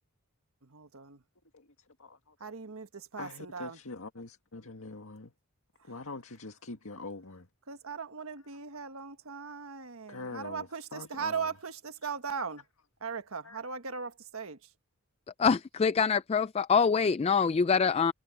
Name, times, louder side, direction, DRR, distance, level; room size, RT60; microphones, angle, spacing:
voice 1, 0.6-1.2 2.4-3.8 5.8-5.9 7.7-12.6 13.0-14.7, right 5 dB, 75° right, 1.5 m, -39 dB
voice 2, 2.0-2.5 3.2-5.3 5.8-7.5 8.4-8.5 10.1-11.5 12.0-12.1 13.4-13.6, left 3 dB, 80° left, 1.9 m, -44 dB
voice 3, 15.4-18.1, left 5 dB, 30° left, 0.3 m, -25 dB
head